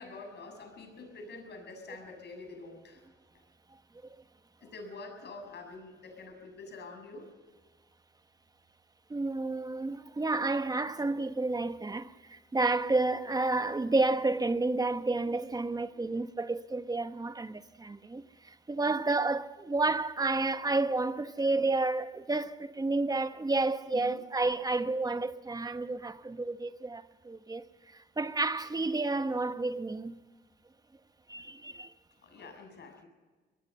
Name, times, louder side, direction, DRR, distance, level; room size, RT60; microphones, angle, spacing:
voice 1, 0.0-3.0 4.6-7.3 23.9-24.2 32.2-33.1, left 3 dB, 60° left, 7.2 m, -46 dB
voice 2, 9.1-27.6 28.2-30.2 31.3-31.9, right 3 dB, 20° right, 1.2 m, -30 dB
24.0 x 20.0 x 5.6 m
cardioid pair, 90°, 20 cm